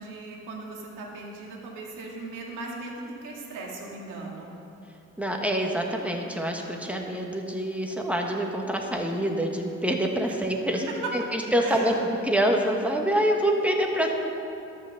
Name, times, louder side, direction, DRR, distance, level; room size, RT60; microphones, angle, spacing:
voice 1, 0.0-4.5 10.3-10.4 11.6-12.0, right 2 dB, 85° right, -2 dB, 2.1 m, -38 dB
voice 2, 5.2-11.9 12.2-14.1, equal, 5° right, 1 dB, 1.3 m, -26 dB
12.0 x 6.0 x 7.0 m, 2.9 s
cardioid pair, 90°, 30 cm